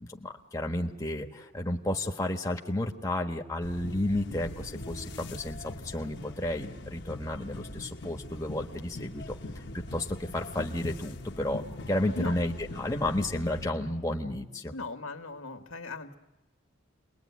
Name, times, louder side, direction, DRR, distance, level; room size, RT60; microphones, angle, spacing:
voice 1, 0.1-14.7, left 1 dB, 15° left, 2 dB, 1.4 m, -32 dB
sound 1, 3.6-13.7, left 1 dB, 55° left, 1.2 m, -42 dB
voice 2, 14.7-16.2, left 3 dB, 85° left, 6 dB, 1.8 m, -38 dB
29.5 x 21.5 x 9.4 m, 0.99 s
head